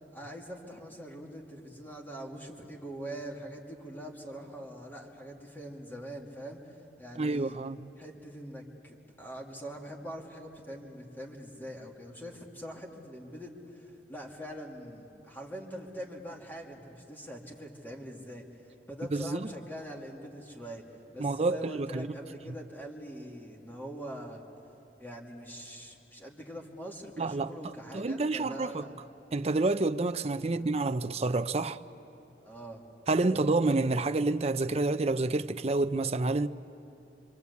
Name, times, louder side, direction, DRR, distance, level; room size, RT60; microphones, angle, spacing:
voice 1, 0.1-7.6 8.0-20.8 21.1-24.4 25.0-28.9 30.4-30.7 32.4-32.8 33.2-33.4, equal, 10° left, 2.5 m, -43 dB
voice 2, 7.2-7.9 19.1-19.5 21.2-22.1 27.2-27.5 27.9-28.9 29.3-31.8 33.1-36.5, right 3 dB, 35° right, 0.6 m, -28 dB
26.5 x 25.0 x 8.3 m
head